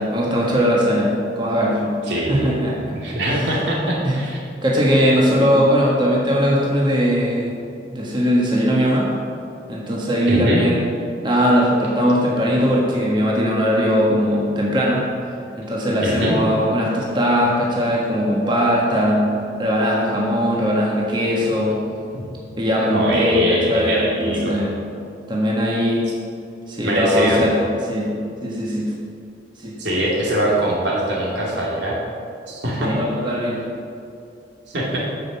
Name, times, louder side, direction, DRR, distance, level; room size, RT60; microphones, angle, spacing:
voice 1, 0.0-2.0 2.3-3.6 4.0-4.2 4.6-7.5 7.9-9.1 9.7-10.8 11.2-15.1 15.6-19.3 19.6-21.7 22.6-24.0 24.2-24.7 25.3-26.0 26.7-27.6 27.8-28.1 28.4-28.9 29.6-29.7 32.8-33.6, equal, 25° right, -4 dB, 1.5 m, -19 dB
voice 2, 2.1-2.5 2.9-4.4 5.4-5.5 10.3-10.6 16.0-16.4 21.5-21.6 22.1-22.2 22.8-24.6 26.8-27.5 29.8-32.0 32.5-32.9 34.7-35.0, right 1 dB, 75° right, -4 dB, 2.6 m, -22 dB
9.1 x 6.7 x 7.2 m, 2.5 s
head